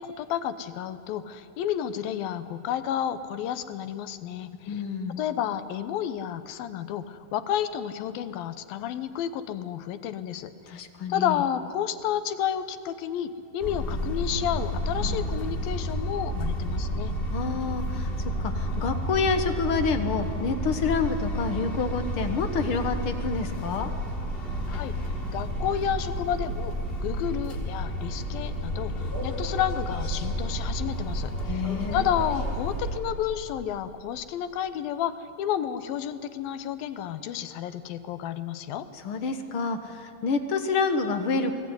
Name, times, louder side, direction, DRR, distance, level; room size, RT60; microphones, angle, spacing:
voice 1, 0.0-4.8 5.2-10.8 11.1-17.1 24.7-24.9 25.3-26.7 27.0-31.6 31.9-38.9, left 10 dB, 75° left, 12 dB, 2.7 m, -31 dB
voice 2, 4.6-5.2 10.7-11.4 17.3-23.9 31.5-32.1 39.0-41.5, left 4 dB, 60° left, 7 dB, 1.4 m, -28 dB
sound 1, 13.6-33.0, equal, 15° left, 3.3 m, -31 dB
29.0 x 20.5 x 9.7 m, 2.4 s
omnidirectional pair, 4.3 m